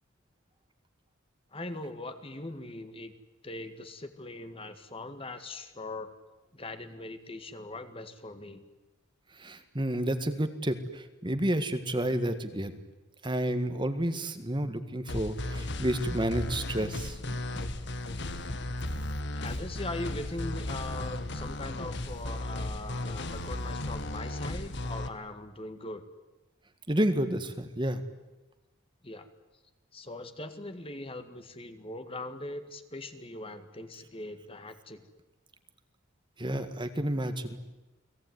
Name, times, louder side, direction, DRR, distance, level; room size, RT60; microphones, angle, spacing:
voice 1, 1.5-3.1 3.4-6.1 6.5-8.6 19.4-26.0 29.0-29.3 29.9-35.1, left 2 dB, 25° left, 9 dB, 1.9 m, -41 dB
voice 2, 9.4-12.7 13.2-17.4 26.9-28.0 36.4-37.6, right 1 dB, 25° right, 9 dB, 1.7 m, -30 dB
sound 1, 15.1-25.1, left 1 dB, 55° left, 1.8 m, -35 dB
30.0 x 20.0 x 9.6 m, 1.1 s
head